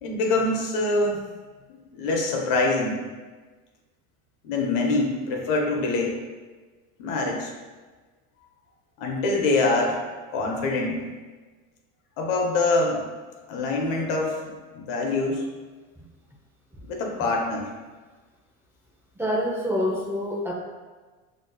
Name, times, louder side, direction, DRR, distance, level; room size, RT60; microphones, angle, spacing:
voice 1, 0.0-1.2 1.9-3.0 4.4-6.1 7.0-7.5 9.0-10.0 10.3-11.0 12.2-13.0 13.5-15.4 16.8-17.7, left 2 dB, 75° left, 0 dB, 1.0 m, -24 dB
voice 2, 19.2-20.5, equal, 5° right, -3 dB, 0.7 m, -26 dB
6.1 x 2.9 x 2.2 m, 1.3 s
supercardioid pair, 95°, 42 cm